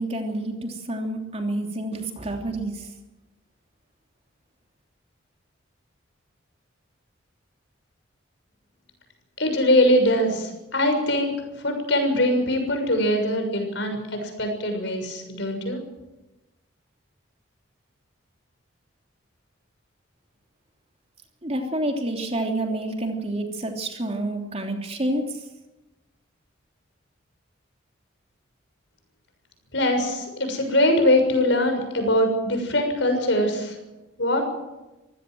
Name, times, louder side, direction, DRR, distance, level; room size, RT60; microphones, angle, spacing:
voice 1, 0.0-2.9 21.4-25.4, right 1 dB, 30° right, 3 dB, 3.1 m, -28 dB
voice 2, 9.4-11.3 11.6-15.8 29.7-33.8 34.2-34.4, left 1 dB, 60° left, 5 dB, 6.6 m, -22 dB
25.0 x 16.0 x 7.8 m, 1.0 s
head